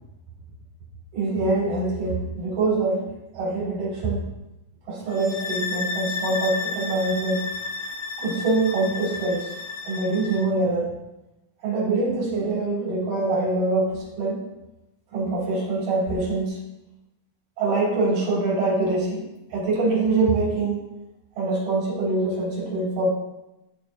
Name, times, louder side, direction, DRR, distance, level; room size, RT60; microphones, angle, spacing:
voice 1, 1.1-4.3 4.9-7.4 8.2-9.5 9.8-10.9 11.6-14.5 15.1-16.6 17.6-20.9 21.4-23.1, right 2 dB, 55° right, -10 dB, 4.2 m, -24 dB
sound 1, 5.1-10.5, left 4 dB, 80° left, 2.6 m, -32 dB
12.5 x 4.4 x 2.7 m, 0.95 s
omnidirectional pair, 4.2 m